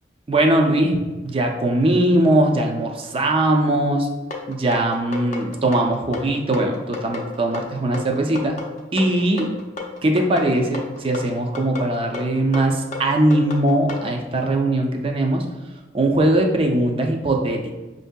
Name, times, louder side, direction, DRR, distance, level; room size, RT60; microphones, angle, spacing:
voice 1, 0.3-4.1 4.5-8.6 8.9-9.5 10.0-15.4 15.9-17.7, right 1 dB, 30° right, 2 dB, 0.4 m, -20 dB
sound 1, 4.3-14.1, left 3 dB, 40° left, 0.6 m, -32 dB
5.7 x 2.6 x 2.2 m, 1.2 s
head